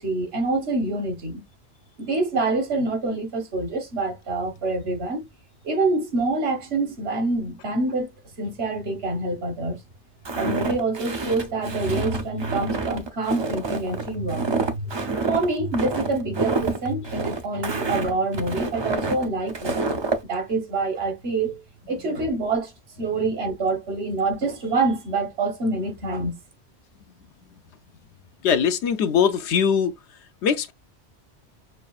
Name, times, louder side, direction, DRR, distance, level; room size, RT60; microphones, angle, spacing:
voice 1, 0.0-1.4 2.0-5.2 5.6-8.1 8.4-9.8 10.3-15.0 15.3-21.6 21.9-22.7 23.0-26.4, right 3 dB, 65° right, 1.4 m, -26 dB
Walk footsteps, 10.3-20.2, right 3 dB, 40° right, 0.4 m, -28 dB
voice 2, 28.4-29.9 30.4-30.7, left 7 dB, 80° left, 0.9 m, -21 dB
6.7 x 2.4 x 2.4 m
omnidirectional pair, 1.1 m